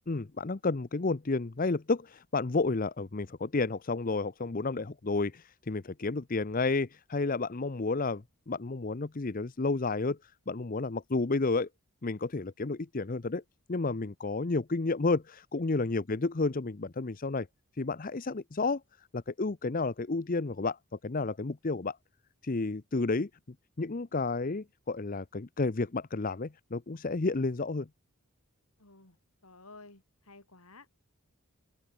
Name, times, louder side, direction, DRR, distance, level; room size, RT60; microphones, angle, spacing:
voice 1, 0.1-11.7 12.0-13.4 13.7-17.5 17.8-22.0 22.4-23.3 23.8-27.9, left 3 dB, 40° left, 0.7 m, -31 dB
voice 2, 28.8-29.2 29.4-30.9, left 3 dB, 75° left, 5.5 m, -53 dB
head